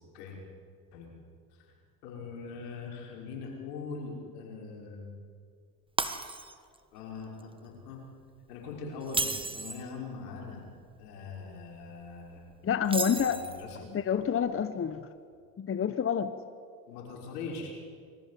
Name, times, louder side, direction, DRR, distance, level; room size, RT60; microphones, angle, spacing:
voice 1, 2.0-5.1 6.9-8.0 8.5-10.7 11.0-12.4 13.0-13.9 16.9-17.8, left 4 dB, 80° left, -1 dB, 5.8 m, -42 dB
Shatter, 6.0-6.8 7.2-7.4 9.0-9.9 12.8-13.7, right 3 dB, 10° right, 1.4 m, -33 dB
voice 2, 12.6-13.4 13.9-15.0 15.6-16.3, left 8 dB, 30° left, 11 dB, 1.1 m, -28 dB
23.5 x 14.5 x 8.5 m, 2.1 s
hypercardioid pair, 80°, 46 cm